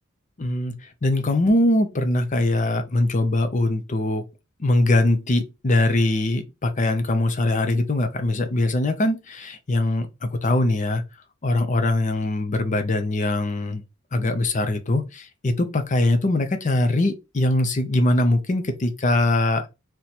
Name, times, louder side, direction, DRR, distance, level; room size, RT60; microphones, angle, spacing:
voice 1, 0.4-4.2 4.6-11.0 11.4-13.8 14.1-19.7, left 2 dB, 40° left, 0.6 m, -22 dB
2.9 x 2.2 x 4.0 m
head